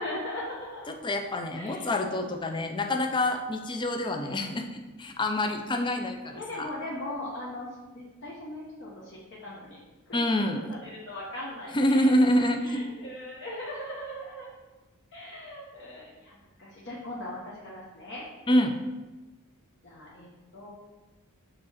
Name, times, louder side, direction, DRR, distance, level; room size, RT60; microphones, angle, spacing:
voice 1, 0.0-0.9 1.6-1.9 6.2-7.7 7.9-9.8 10.1-10.4 10.8-12.1 12.6-14.5 15.1-18.2 19.8-20.7, left 1 dB, 55° left, -6 dB, 1.1 m, -39 dB
voice 2, 0.9-6.7 10.1-10.6 11.7-12.8 18.5-18.8, left 1 dB, 20° left, 5 dB, 0.5 m, -26 dB
5.1 x 3.6 x 5.7 m, 1.2 s
head